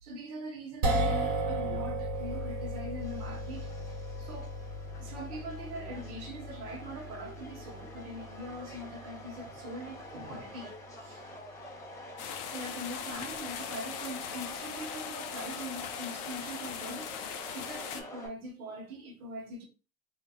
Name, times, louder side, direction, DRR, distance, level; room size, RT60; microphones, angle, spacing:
voice 1, 0.0-4.5 5.0-10.7 11.0-11.2 11.5-11.6 12.5-17.1 17.5-19.7, right 1 dB, 80° right, 1.0 m, -42 dB
sound 1, 0.8-13.1, right 1 dB, 40° right, 0.9 m, -37 dB
Subway metro underground, 2.1-18.3, left 1 dB, 5° left, 0.7 m, -47 dB
sound 2, 12.2-18.0, left 9 dB, 55° left, 0.5 m, -40 dB
3.6 x 2.2 x 2.3 m
supercardioid pair, 115°, 43 cm